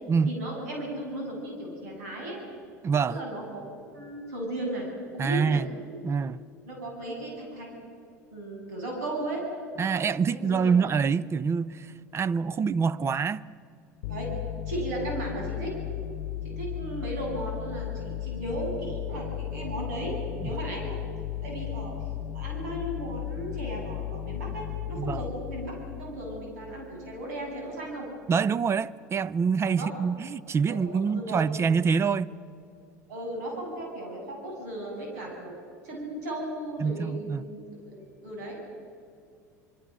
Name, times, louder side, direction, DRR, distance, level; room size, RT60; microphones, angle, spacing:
voice 1, 0.3-2.4 3.1-3.6 3.9-4.9 5.1-5.6 6.7-7.7 8.3-9.4 10.4-10.7 14.1-14.3 14.7-15.7 16.4-20.2 20.4-21.0 21.4-21.9 22.3-28.1 29.8-29.9 30.7-31.4 33.1-35.5 35.8-37.6 37.9-38.6, right 1 dB, 75° right, 7.9 m, -35 dB
voice 2, 2.8-3.2 5.2-5.7 6.0-6.4 9.8-13.4 20.4-20.6 25.0-25.2 28.3-32.3 36.8-37.4, right 5 dB, 30° right, 0.7 m, -26 dB
sound 1, 14.0-27.2, left 11 dB, 65° left, 0.9 m, -35 dB
26.0 x 23.0 x 6.4 m
hypercardioid pair, 75°, 9 cm